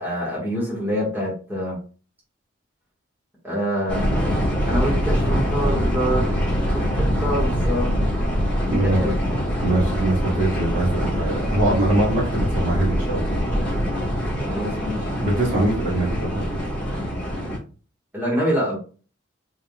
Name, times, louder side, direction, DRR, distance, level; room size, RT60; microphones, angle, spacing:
voice 1, 0.0-1.8 3.4-4.3 4.7-6.3 6.9-8.0 8.7-9.2 14.4-15.1 18.1-18.8, equal, 10° right, -5 dB, 1.6 m, -26 dB
sound 1, 3.9-17.6, equal, 5° left, 1.6 m, -24 dB
voice 2, 8.7-9.1 9.6-13.4 15.2-16.4, right 1 dB, 50° right, -4 dB, 2.0 m, -22 dB
4.5 x 3.6 x 2.3 m, 0.37 s
head